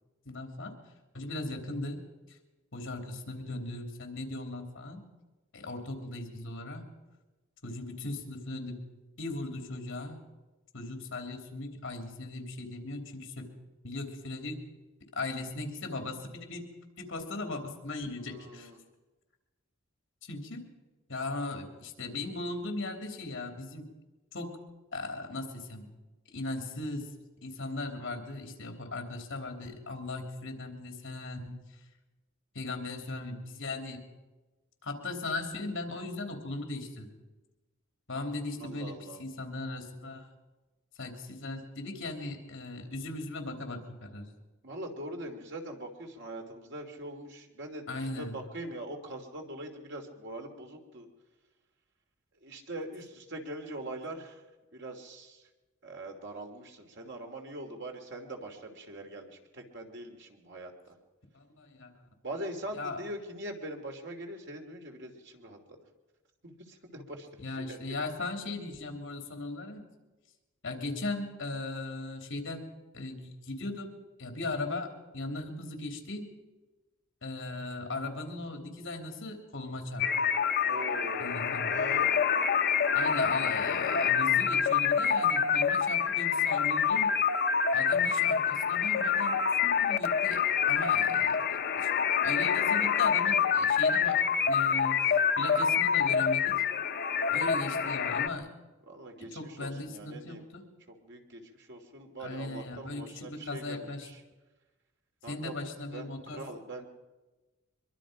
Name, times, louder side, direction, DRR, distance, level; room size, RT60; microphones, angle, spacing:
voice 1, 0.2-0.8 1.1-2.0 2.7-5.0 5.5-6.8 7.6-8.9 9.2-10.2 10.7-13.6 13.8-14.6 15.1-16.7 17.0-18.7 20.2-20.7 21.1-23.9 24.3-24.6 24.9-25.9 26.3-27.1 27.4-31.6 32.5-34.0 34.8-37.1 38.1-40.3 41.0-44.3 47.9-48.4 61.3-62.0 62.8-63.0 67.4-69.8 70.6-72.6 72.9-76.3 77.2-80.1 81.2-81.8 82.9-87.1 87.7-91.4 91.8-91.9 92.2-96.6 97.3-98.5 99.2-100.7 102.2-104.1 105.2-106.4, left 2 dB, 65° left, 4 dB, 3.2 m, -38 dB
voice 2, 18.2-18.8 38.5-39.2 44.6-51.1 52.4-54.4 54.7-55.5 55.8-60.9 62.2-65.8 66.4-67.8 80.7-82.2 98.9-100.5 100.9-104.2 105.2-105.5 105.9-106.9, right 1 dB, 60° right, 3 dB, 3.0 m, -42 dB
sound 1, 80.0-98.3, left 7 dB, 50° left, 0.8 m, -27 dB
24.0 x 23.0 x 5.2 m, 1.2 s
head